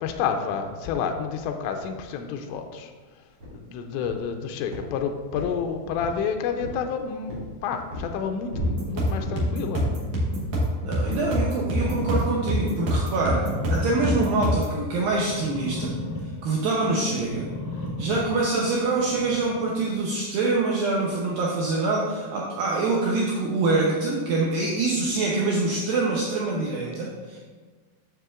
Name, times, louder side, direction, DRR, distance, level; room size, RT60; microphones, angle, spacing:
voice 1, 0.0-2.9 3.5-9.8, left 6 dB, 85° left, 4 dB, 2.8 m, -29 dB
sound 1, 3.4-3.6 4.0-4.3 4.7-5.0 5.3-6.2 6.6-6.9 7.3-7.5 7.9-8.1 8.5-8.8 9.2-9.4 9.8-10.1 10.4-10.7 11.1-11.3 11.8-12.1 12.5-12.7 13.2-13.3, left 1 dB, 40° right, 1.7 m, -36 dB
sound 2, 8.6-14.8, equal, 70° right, 1.6 m, -26 dB
voice 2, 10.8-16.0 16.4-17.5 18.0-27.4, right 3 dB, 85° right, -3 dB, 2.0 m, -25 dB
sound 3, 11.9-19.8, left 2 dB, 65° left, 2.8 m, -36 dB
9.3 x 6.7 x 2.4 m, 1.4 s
omnidirectional pair, 5.1 m